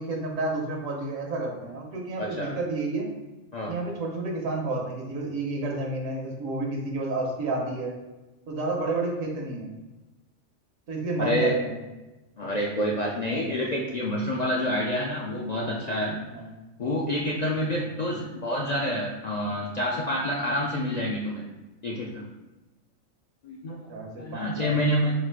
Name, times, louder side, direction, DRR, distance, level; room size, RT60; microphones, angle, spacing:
voice 1, 0.0-3.1 3.7-7.9 8.5-9.7 10.9-11.8 13.2-13.5 16.3-16.5 17.6-17.8 23.9-24.7, right 2 dB, 80° right, 0 dB, 1.3 m, -30 dB
voice 2, 2.2-2.6 3.5-3.7 11.2-11.5 12.4-16.2 16.8-21.4 21.8-22.3 23.4-23.9 24.2-25.1, equal, 60° left, -3 dB, 0.4 m, -28 dB
4.0 x 2.4 x 4.5 m, 1.1 s
omnidirectional pair, 1.3 m